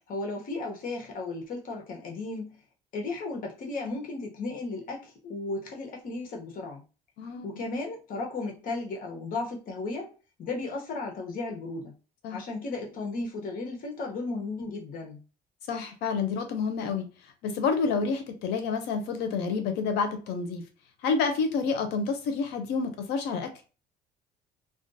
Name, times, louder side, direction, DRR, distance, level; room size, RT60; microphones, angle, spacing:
voice 1, 0.1-2.6 2.9-6.8 7.4-10.1 10.4-11.9 12.3-15.2, left 3 dB, 55° left, 0.9 m, -35 dB
voice 2, 7.2-7.5 12.2-12.4 15.7-17.1 17.4-20.6 21.0-23.5, left 5 dB, 85° left, 0.6 m, -29 dB
2.4 x 2.3 x 2.6 m
cardioid pair, 110°, 17 cm